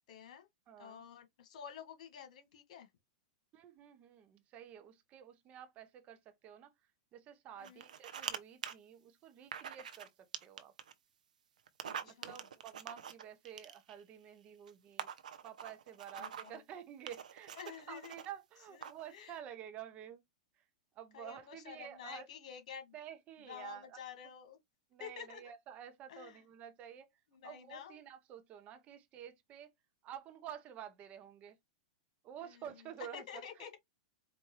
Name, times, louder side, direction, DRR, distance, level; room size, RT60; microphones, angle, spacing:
voice 1, 0.1-0.5 0.8-2.9 7.6-7.8 11.8-12.4 16.2-16.6 17.5-18.2 18.7-19.4 21.1-22.9 23.4-24.6 25.0-25.5 26.1-26.4 27.3-28.0 32.4-32.7 33.1-33.8, left 8 dB, 65° left, 1.7 m, -50 dB
voice 2, 0.7-1.0 3.5-6.7 7.1-10.7 12.0-15.1 15.4-17.5 17.9-20.2 21.0-22.3 22.9-24.0 24.9-27.1 27.4-29.7 30.0-31.6 32.2-33.4, right 9 dB, 35° right, 0.9 m, -50 dB
sound 1, 7.6-8.4 8.6-8.7 9.5-10.1 10.3-10.9 11.7-14.0 14.7-14.8 15.0-16.6 17.1-18.3 18.8-19.1, right 8 dB, 85° right, 0.7 m, -45 dB
4.6 x 2.6 x 3.1 m
hypercardioid pair, 125°, 4 cm